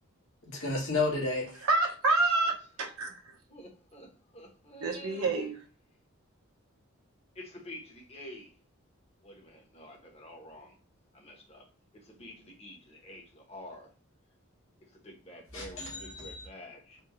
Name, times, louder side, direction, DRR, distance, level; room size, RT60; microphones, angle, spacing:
voice 1, 0.5-1.6 15.5-16.5, left 3 dB, 70° left, 1.7 m, -32 dB
voice 2, 1.6-3.1 4.8-5.5, right 3 dB, 85° right, 1.0 m, -27 dB
voice 3, 3.5-5.2 7.3-8.6 9.2-10.8 11.1-13.9 14.8-17.0, left 1 dB, 30° left, 1.0 m, -49 dB
4.4 x 2.3 x 3.1 m
head